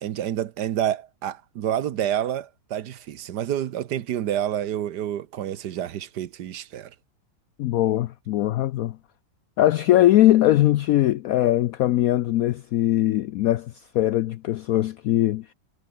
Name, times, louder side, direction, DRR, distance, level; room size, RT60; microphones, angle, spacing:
voice 1, 0.0-6.9, right 10 dB, 65° right, 1.4 m, -28 dB
voice 2, 7.6-9.0 9.6-15.5, left 14 dB, 80° left, 0.8 m, -21 dB
omnidirectional pair, 2.0 m